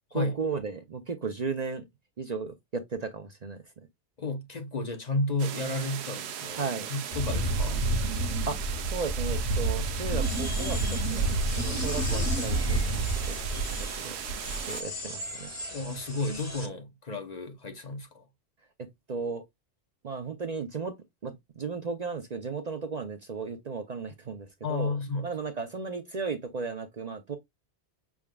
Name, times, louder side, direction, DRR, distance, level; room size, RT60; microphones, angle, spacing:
voice 1, 0.1-1.8 2.2-3.6 6.5-6.9 8.5-13.6 13.9-14.2 14.7-15.5 18.8-19.4 20.0-20.9 21.2-25.0 25.2-27.4, right 4 dB, 45° right, 0.6 m, -35 dB
voice 2, 4.2-7.9 15.7-18.2 24.6-25.3, left 2 dB, 45° left, 0.8 m, -32 dB
sound 1, 5.4-14.8, right 9 dB, 75° right, 0.9 m, -38 dB
Wind, 7.1-13.9 14.3-14.7, right 2 dB, 80° left, 1.3 m, -29 dB
sound 2, 10.2-16.7, left 1 dB, 15° left, 1.4 m, -39 dB
6.1 x 3.5 x 2.2 m
omnidirectional pair, 1.1 m